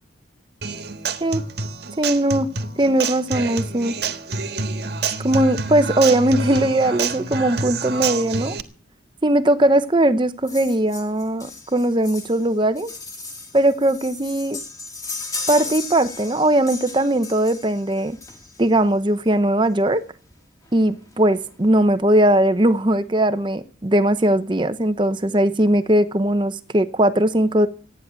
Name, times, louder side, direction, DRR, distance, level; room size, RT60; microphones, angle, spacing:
Human voice / Acoustic guitar, 0.6-8.6, right 4 dB, 55° right, 1.5 m, -27 dB
voice 1, 2.0-2.5 2.8-3.9 5.2-8.6 9.2-12.9 13.5-14.6 15.5-18.2 18.6-20.0 20.7-27.7, right 1 dB, 25° right, 0.8 m, -19 dB
sound 1, 10.5-18.8 19.9-20.0 20.3-20.4 20.6-20.8 21.1-21.7 22.2-22.3, left 3 dB, 20° left, 2.3 m, -35 dB
14.5 x 9.7 x 8.2 m
head